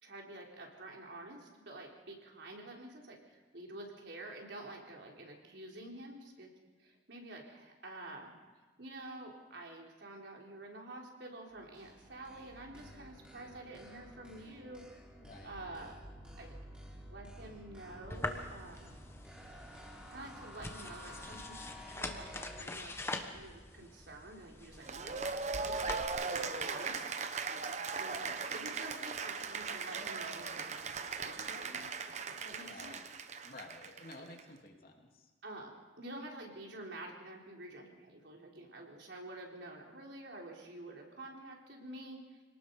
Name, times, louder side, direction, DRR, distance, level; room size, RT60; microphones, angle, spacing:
voice 1, 0.0-6.5 6.8-8.3 8.8-15.0 15.4-16.0 16.4-16.6 17.0-19.0 20.1-23.0 23.2-25.9 26.2-27.2 27.9-31.9 32.2-33.0 34.2-34.3 35.4-42.4, right 2 dB, 80° right, 0 dB, 4.1 m, -49 dB
sound 1, 11.5-22.6, equal, 5° right, 3.3 m, -52 dB
voice 2, 15.2-15.7 25.7-26.1 28.3-28.6 32.6-33.0 33.4-35.3, left 2 dB, 55° left, 1 dB, 2.9 m, -53 dB
sound 2, 18.1-26.0, left 2 dB, 15° left, 1.3 m, -44 dB
Cheering / Applause, 24.8-34.4, right 4 dB, 40° right, 1.0 m, -39 dB
26.5 x 19.0 x 5.4 m, 1.3 s
head